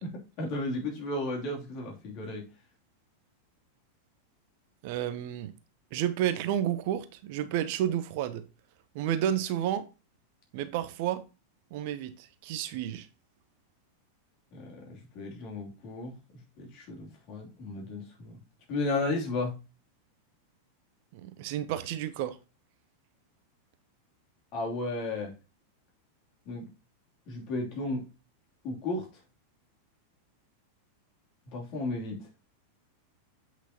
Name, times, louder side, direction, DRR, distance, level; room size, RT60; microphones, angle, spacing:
voice 1, 0.0-2.4 14.5-16.1 16.6-18.4 18.7-19.5 24.5-25.3 26.5-26.7 27.3-28.0 28.6-29.1 31.5-32.2, left 2 dB, 40° left, 2.8 m, -34 dB
voice 2, 4.8-5.5 5.9-8.4 8.9-9.8 10.5-11.2 11.7-13.1 21.1-22.4, right 11 dB, 50° right, 0.7 m, -31 dB
8.1 x 6.0 x 2.8 m
figure-of-eight pair, 90°, 0 cm